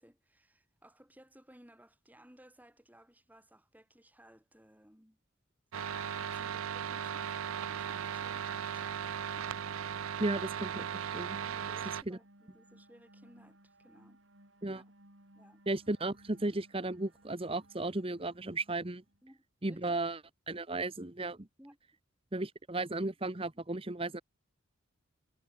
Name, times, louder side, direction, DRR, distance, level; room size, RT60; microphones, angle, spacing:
voice 1, 0.0-5.2 11.4-14.2 14.7-14.9 15.3-15.6 19.2-20.0 21.6-21.8, equal, 10° right, 6.3 m, -60 dB
sound 1, 5.7-12.0, right 8 dB, 85° right, 0.5 m, -37 dB
sound 2, 8.9-19.2, right 1 dB, 65° right, 6.4 m, -62 dB
voice 2, 10.2-10.9 11.1-11.4 12.1-12.2 14.6-14.8 15.7-19.0 19.6-20.2 20.5-21.5 22.3-24.2, right 2 dB, 25° right, 1.1 m, -35 dB
head